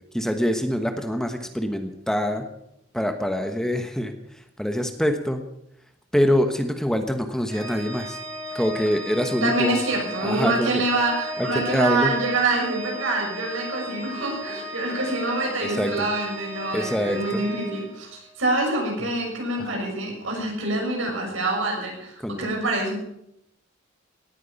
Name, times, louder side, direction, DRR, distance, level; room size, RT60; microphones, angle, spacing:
voice 1, 0.1-2.5 2.9-4.1 4.6-5.4 6.1-8.2 8.5-9.8 10.2-10.8 11.5-12.1 15.6-16.1 16.7-17.4 19.6-19.7 22.2-22.4, equal, 5° left, 6 dB, 1.2 m, -25 dB
Organ, 7.5-18.3, equal, 50° right, 5.4 m, -35 dB
voice 2, 9.4-23.0, right 2 dB, 80° right, 0 dB, 6.6 m, -26 dB
18.0 x 9.4 x 7.0 m, 0.79 s
head